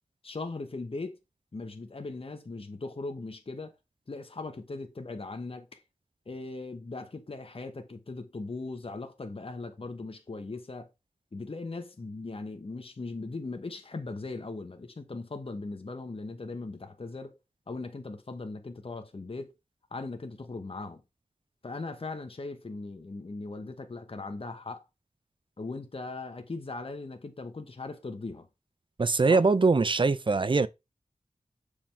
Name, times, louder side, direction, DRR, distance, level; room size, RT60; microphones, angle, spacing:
voice 1, 0.2-1.2 1.5-3.7 4.1-5.8 6.3-10.9 11.3-17.4 17.7-19.5 19.9-21.0 21.6-24.8 25.6-28.5 29.3-29.4, left 3 dB, 45° left, 1.0 m, -39 dB
voice 2, 29.0-30.7, right 3 dB, 35° right, 0.5 m, -22 dB
7.0 x 5.1 x 3.4 m
wide cardioid pair, 70°, 14 cm